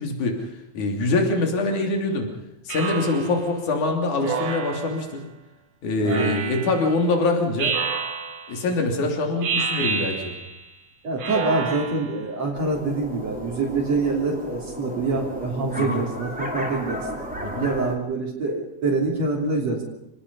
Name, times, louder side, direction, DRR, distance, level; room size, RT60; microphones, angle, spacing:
voice 1, 0.0-2.3 2.7-5.2 5.8-7.8 8.5-10.3 15.7-16.0 17.4-17.6, left 2 dB, 75° left, 3 dB, 4.6 m, -24 dB
Speech synthesizer, 2.7-3.5 4.2-5.1 6.1-6.9 7.6-8.6 9.4-10.6 11.2-12.2, right 5 dB, 80° right, 3.7 m, -29 dB
voice 2, 6.0-6.3 11.0-17.0 17.5-19.8, right 3 dB, 55° right, -1 dB, 4.4 m, -25 dB
sound 1, 12.5-18.0, equal, 5° right, 4.4 m, -34 dB
28.5 x 18.5 x 5.6 m, 0.85 s
omnidirectional pair, 3.5 m